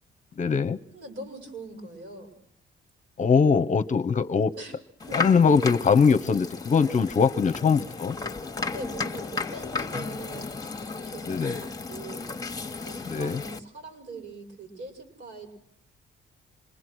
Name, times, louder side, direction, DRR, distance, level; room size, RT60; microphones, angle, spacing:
voice 1, 0.4-0.8 3.2-4.5 5.1-8.2 11.3-11.6 13.1-13.4, left 5 dB, 40° left, 10 dB, 0.9 m, -22 dB
voice 2, 0.9-2.3 4.5-4.8 5.1-5.2 7.6-7.8 8.7-12.3 12.8-15.5, right 2 dB, 70° right, 6 dB, 5.9 m, -42 dB
sound 1, 5.0-13.6, left 4 dB, 20° left, 1.4 m, -34 dB
26.5 x 21.0 x 6.3 m, 0.74 s
cardioid pair, 90°, 20 cm